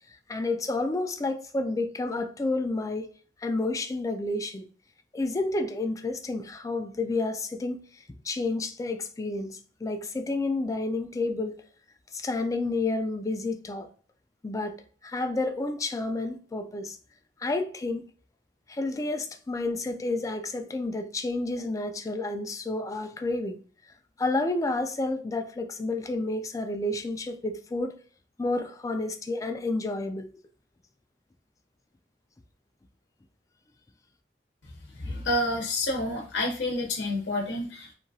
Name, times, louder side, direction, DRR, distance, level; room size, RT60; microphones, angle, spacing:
voice 1, 0.1-3.1 3.4-4.7 5.1-11.6 12.1-13.9 14.4-17.0 17.4-18.1 18.7-23.6 24.2-27.9 28.4-30.3, left 2 dB, 20° left, 0.3 m, -30 dB
voice 2, 34.9-37.9, left 1 dB, 85° left, 0.7 m, -29 dB
2.8 x 2.3 x 2.6 m
head